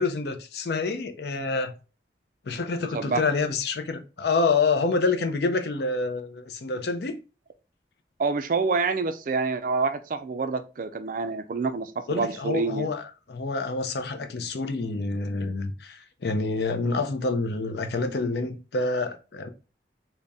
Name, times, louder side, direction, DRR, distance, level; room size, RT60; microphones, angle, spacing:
voice 1, 0.0-1.7 2.5-7.2 12.1-19.5, left 3 dB, 65° left, 0.5 m, -27 dB
voice 2, 8.2-12.9, right 4 dB, 50° right, 0.4 m, -27 dB
3.9 x 2.1 x 3.5 m
head